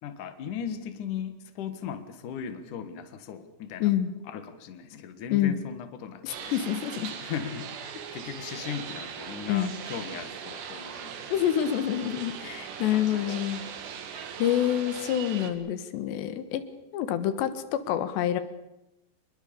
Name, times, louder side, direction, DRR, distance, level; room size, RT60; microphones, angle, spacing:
voice 1, 0.0-3.9 4.3-6.6 7.2-11.4 12.9-13.7, left 8 dB, 55° left, 9 dB, 2.9 m, -38 dB
voice 2, 3.8-4.1 5.3-5.6 6.2-7.1 9.5-9.7 11.3-13.7 14.1-16.6 16.9-18.4, left 11 dB, 90° left, 11 dB, 3.6 m, -27 dB
sound 1, 6.3-15.5, right 8 dB, 85° right, 4.3 m, -40 dB
26.0 x 21.5 x 7.0 m, 0.92 s
omnidirectional pair, 4.8 m